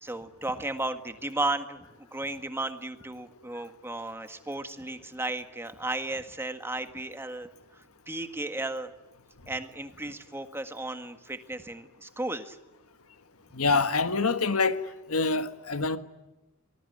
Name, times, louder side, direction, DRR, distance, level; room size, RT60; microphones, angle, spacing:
voice 1, 0.0-7.5 8.1-8.9 9.5-12.6, right 2 dB, 10° right, 1.7 m, -34 dB
voice 2, 13.5-14.8 15.1-16.0, left 4 dB, 75° left, 1.6 m, -25 dB
25.0 x 20.5 x 9.5 m
head